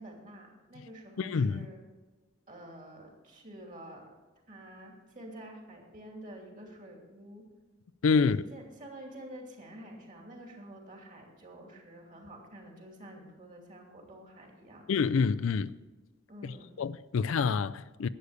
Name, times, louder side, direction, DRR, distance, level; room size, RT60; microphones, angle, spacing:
voice 1, 0.0-1.8 2.5-4.1 4.5-7.5 8.2-14.8 16.3-16.7, right 1 dB, 40° right, 2.7 m, -48 dB
voice 2, 1.2-1.7 8.0-8.4 14.9-15.7 16.4-18.1, left 5 dB, 70° left, 0.4 m, -27 dB
11.5 x 8.2 x 6.6 m
head